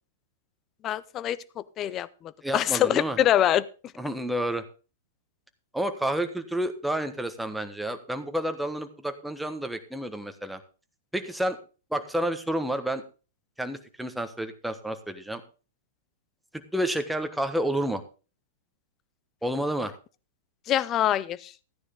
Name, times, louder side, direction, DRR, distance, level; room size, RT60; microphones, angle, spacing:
voice 1, 0.8-3.7 20.7-21.5, left 11 dB, 30° left, 19 dB, 0.6 m, -25 dB
voice 2, 2.4-3.2 4.0-4.6 5.7-10.6 11.1-11.6 11.9-13.0 13.6-15.4 16.7-18.0 19.4-19.9, right 1 dB, 5° right, 7 dB, 1.3 m, -30 dB
14.0 x 9.8 x 3.7 m, 0.34 s
hypercardioid pair, 110°, 0 cm